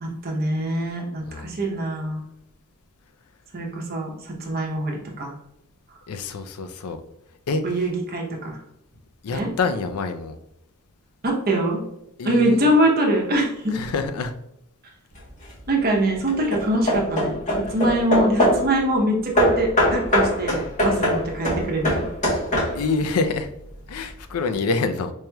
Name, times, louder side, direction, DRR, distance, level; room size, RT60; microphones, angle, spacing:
voice 1, 0.0-2.2 3.5-4.1 4.4-5.3 7.6-8.6 9.3-9.5 11.2-11.8 12.2-13.7 15.7-17.3 17.7-22.0, right 1 dB, 45° right, 0 dB, 0.8 m, -23 dB
voice 2, 1.2-1.6 6.1-7.0 7.5-7.8 9.2-10.4 12.2-12.7 13.7-14.3 20.9-21.1 22.7-23.5 23.9-25.1, left 4 dB, 80° left, 9 dB, 0.4 m, -26 dB
Hammer / Wood, 15.1-15.6 16.3-18.7 19.4-23.0, left 1 dB, 35° left, 1.1 m, -22 dB
4.6 x 2.9 x 2.3 m, 0.81 s
head